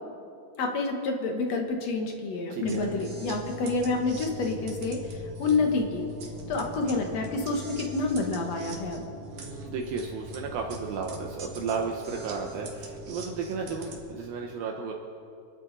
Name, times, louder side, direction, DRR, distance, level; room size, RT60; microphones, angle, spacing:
voice 1, 0.6-6.1 6.5-9.0, left 3 dB, 55° left, 3 dB, 2.0 m, -28 dB
voice 2, 2.5-2.9 9.3-14.9, right 5 dB, 75° right, 1 dB, 2.6 m, -33 dB
sound 1, 2.6-14.0, right 1 dB, 60° right, 3.0 m, -41 dB
27.5 x 11.5 x 4.1 m, 2.5 s
omnidirectional pair, 4.4 m